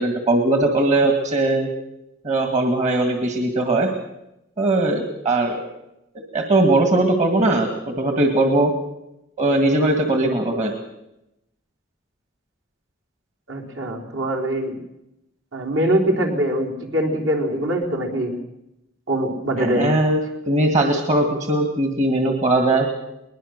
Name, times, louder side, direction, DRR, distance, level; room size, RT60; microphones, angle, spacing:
voice 1, 0.0-1.7 2.2-3.9 4.6-5.7 6.1-8.7 9.4-10.7 19.6-20.2 20.5-22.9, right 2 dB, 35° right, 5 dB, 2.0 m, -19 dB
voice 2, 13.5-14.7 15.5-18.3 19.1-19.8, right 1 dB, 65° right, 1 dB, 4.0 m, -23 dB
22.0 x 20.5 x 6.7 m, 0.87 s
head